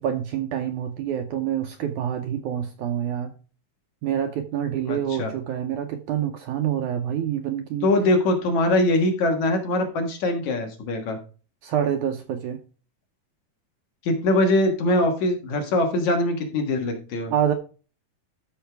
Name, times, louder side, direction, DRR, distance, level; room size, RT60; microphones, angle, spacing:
voice 1, 0.0-3.3 4.0-7.9 11.6-12.6 17.3-17.5, right 9 dB, 75° right, 6 dB, 1.9 m, -27 dB
voice 2, 4.9-5.3 7.8-11.2 14.0-17.3, left 1 dB, 60° left, 4 dB, 2.7 m, -22 dB
13.0 x 5.6 x 3.4 m, 0.35 s
omnidirectional pair, 4.2 m